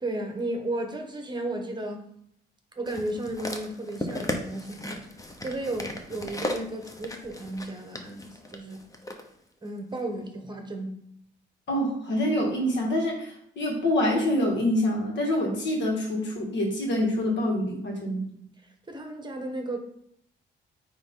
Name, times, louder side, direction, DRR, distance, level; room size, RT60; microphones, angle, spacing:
voice 1, 0.0-2.1 2.8-8.8 9.6-11.0 18.9-19.8, right 1 dB, 20° right, 1.2 m, -34 dB
sound 1, 2.9-9.2 10.0-10.1, left 1 dB, 15° left, 0.9 m, -36 dB
voice 2, 11.7-18.3, left 1 dB, 65° left, 2.0 m, -26 dB
9.1 x 3.3 x 3.8 m
cardioid pair, 90°, 20 cm